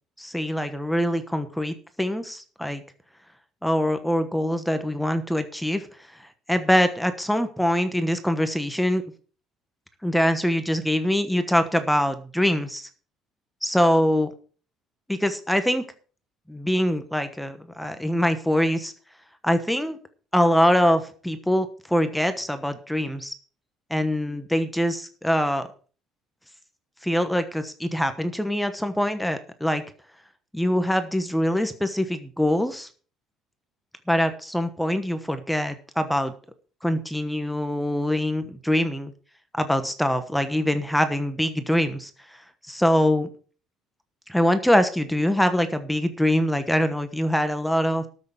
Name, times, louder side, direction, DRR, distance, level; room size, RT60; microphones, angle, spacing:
voice 1, 0.2-2.8 3.6-5.9 6.1-9.0 10.0-12.9 13.6-14.3 15.1-15.8 16.5-18.9 19.4-20.0 20.3-23.3 23.9-25.7 27.0-29.8 30.5-32.9 34.1-36.3 36.8-39.1 39.5-42.4 42.7-43.3 44.3-48.1, equal, ahead, 9 dB, 1.1 m, -24 dB
13.0 x 6.5 x 6.8 m, 0.40 s
cardioid pair, 140°, 0 cm